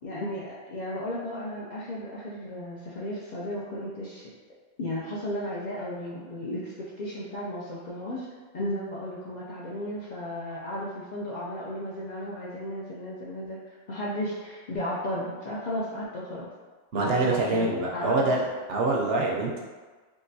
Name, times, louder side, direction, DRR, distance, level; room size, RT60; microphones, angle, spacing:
voice 1, 0.0-4.3 4.8-8.3 8.5-16.5 17.0-18.3, left 1 dB, 55° left, -6 dB, 0.5 m, -34 dB
voice 2, 16.9-18.4 18.7-19.6, right 2 dB, 70° right, -2 dB, 0.8 m, -25 dB
3.7 x 2.5 x 2.6 m, 1.4 s
omnidirectional pair, 1.2 m